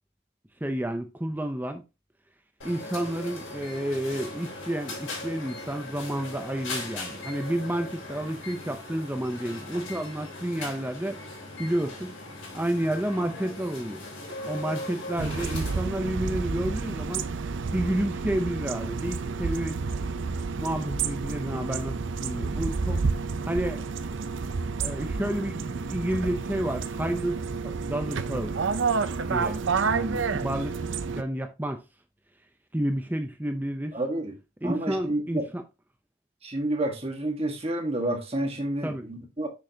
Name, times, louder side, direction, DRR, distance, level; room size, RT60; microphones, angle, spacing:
voice 1, 0.6-1.8 2.6-11.2 11.6-12.2 12.5-14.0 14.5-17.2 17.7-19.9 20.6-23.0 23.4-23.8 24.8-28.5 29.3-30.8 31.2-31.8 32.7-34.0 34.6-35.6 38.8-39.1, right 1 dB, 10° right, 0.5 m, -30 dB
sound 1, 2.6-15.9, left 2 dB, 75° left, 3.1 m, -39 dB
sound 2, 15.2-31.2, right 4 dB, 65° right, 0.5 m, -30 dB
voice 2, 33.9-34.4 34.6-35.5 36.4-39.5, right 1 dB, 30° right, 1.3 m, -29 dB
6.4 x 6.3 x 2.8 m
head